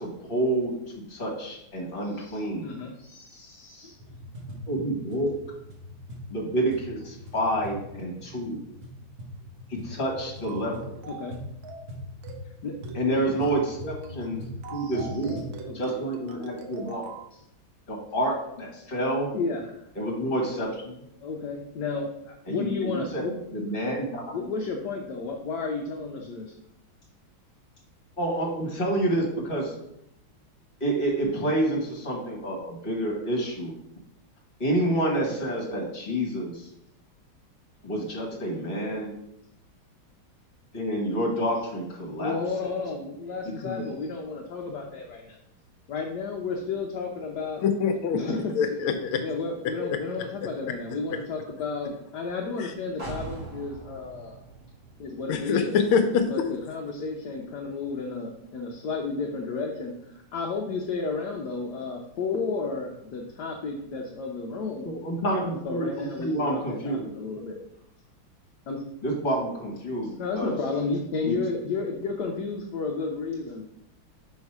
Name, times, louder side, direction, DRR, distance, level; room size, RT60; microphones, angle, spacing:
voice 1, 0.0-2.7 4.7-5.3 6.3-8.6 9.7-11.0 12.9-14.4 14.7-15.4 15.7-17.0 17.9-19.3 20.0-20.9 22.5-24.5 28.2-29.7 30.8-33.7 34.6-36.7 37.8-39.1 40.7-42.3 43.4-43.8 64.8-67.1 67.3-67.5 69.0-70.6 71.2-71.4, right 1 dB, 25° left, -2 dB, 2.0 m, -28 dB
voice 2, 2.1-4.0 11.1-11.4 12.6-12.7 13.3-13.4 14.7-15.0 15.7-15.9 18.8-18.9 19.3-19.7 21.2-23.3 24.3-26.5 42.2-45.4 45.9-47.6 48.1-48.9 49.2-54.3 55.0-55.8 56.3-64.9 65.6-67.6 68.7-68.8 70.2-73.6, left 4 dB, 65° left, 0 dB, 1.2 m, -32 dB
sound 1, 3.9-15.6, left 1 dB, 45° right, 1.5 m, -41 dB
sound 2, 10.4-10.7 11.0-11.3 11.6-11.9 12.2-12.5 12.8-13.1 13.4-13.7 14.0-14.3 14.6-17.3, right 5 dB, 80° right, 1.6 m, -42 dB
voice 3, 47.6-48.2 48.5-49.2 49.8-50.0 52.6-52.7 55.3-56.5, left 6 dB, 85° left, 7 dB, 1.5 m, -24 dB
sound 3, 53.0-56.7 57.1-57.2, right 3 dB, 25° right, 2.6 m, -42 dB
5.4 x 4.9 x 4.7 m, 0.77 s
omnidirectional pair, 2.2 m